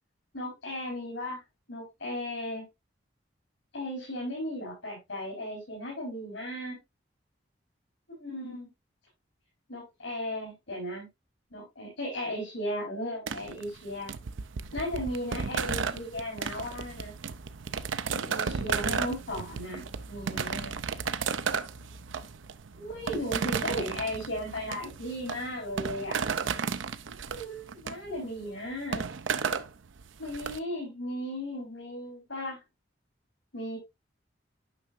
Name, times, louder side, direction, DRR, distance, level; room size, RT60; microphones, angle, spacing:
voice 1, 0.3-1.4 1.7-2.6 3.7-6.8 8.1-8.7 9.7-11.1 11.5-14.1 14.7-17.2 18.1-20.7 22.7-26.2 27.3-29.1 30.2-32.6 33.5-33.8, left 1 dB, 85° left, 4.2 m, -36 dB
sound 1, 13.3-30.6, right 6 dB, 85° right, 0.6 m, -34 dB
9.7 x 5.9 x 2.6 m
head